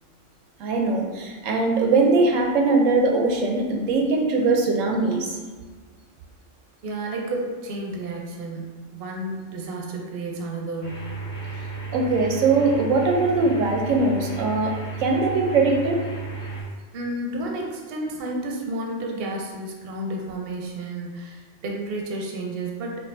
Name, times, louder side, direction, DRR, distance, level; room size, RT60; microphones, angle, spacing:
voice 1, 0.6-5.3 11.9-16.0, right 3 dB, 85° right, 2 dB, 0.9 m, -21 dB
voice 2, 6.8-11.0 16.9-23.0, right 2 dB, 60° right, 0 dB, 0.8 m, -31 dB
sound 1, 10.8-16.6, right 4 dB, 40° left, 1.2 m, -34 dB
4.7 x 2.4 x 2.5 m, 1.4 s
omnidirectional pair, 1.3 m